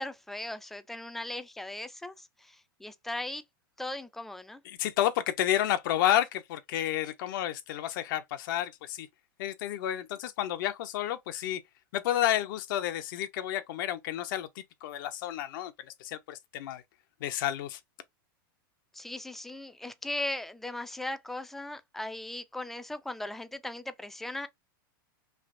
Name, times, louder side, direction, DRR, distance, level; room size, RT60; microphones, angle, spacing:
voice 1, 0.0-2.6 2.8-3.4 3.8-4.6 18.9-24.5, left 1 dB, ahead, 0.3 m, -38 dB
voice 2, 4.7-9.1 9.4-11.6 11.9-15.7 16.0-16.8 17.2-17.8, left 12 dB, 60° left, 0.5 m, -30 dB
3.3 x 2.8 x 2.5 m
supercardioid pair, 135°, 12 cm